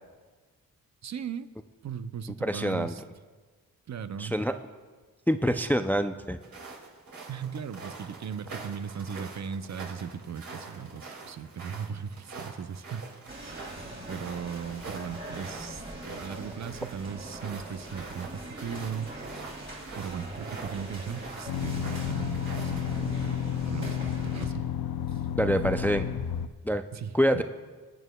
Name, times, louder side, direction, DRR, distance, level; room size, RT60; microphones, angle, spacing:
voice 1, 1.0-1.5 1.8-3.0 3.9-4.4 7.3-13.2 14.1-19.5 19.9-24.7 25.1-25.3 26.9-27.4, right 7 dB, 50° right, 12 dB, 0.5 m, -38 dB
voice 2, 2.4-2.9 4.2-4.5 5.3-6.4 25.4-26.1 26.6-26.8 27.1-27.4, equal, 5° left, 8 dB, 0.4 m, -25 dB
sound 1, 6.4-22.9, right 3 dB, 70° right, 2.5 m, -45 dB
sound 2, 13.3-24.5, right 1 dB, 35° right, 3.0 m, -42 dB
sound 3, 21.5-26.5, left 9 dB, 85° left, 0.5 m, -31 dB
21.0 x 9.0 x 2.2 m, 1.4 s
cardioid pair, 75°, 35 cm